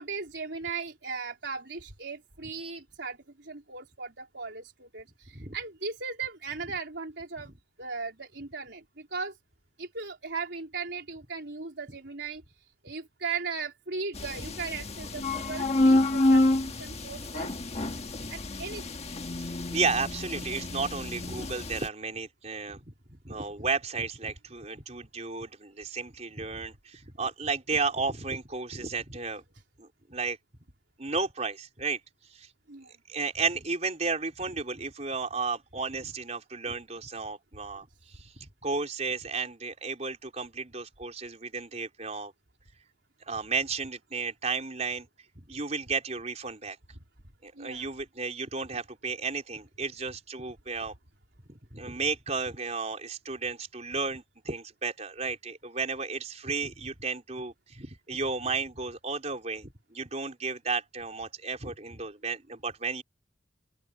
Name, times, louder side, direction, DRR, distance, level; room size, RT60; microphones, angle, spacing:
voice 1, 0.0-7.5 7.8-9.3 9.8-12.4 12.8-16.4 16.8-17.5 18.3-18.9 32.7-32.9 47.6-47.9, right 4 dB, 75° right, 4.0 m, -37 dB
sound 1, 14.1-21.9, left 1 dB, 35° left, 1.5 m, -28 dB
voice 2, 19.4-29.4 29.8-30.4 31.0-32.0 32.3-32.5 33.1-37.9 38.2-42.3 43.3-45.1 45.4-46.8 47.4-50.9 51.7-63.0, right 4 dB, 40° right, 4.3 m, -33 dB
open air
head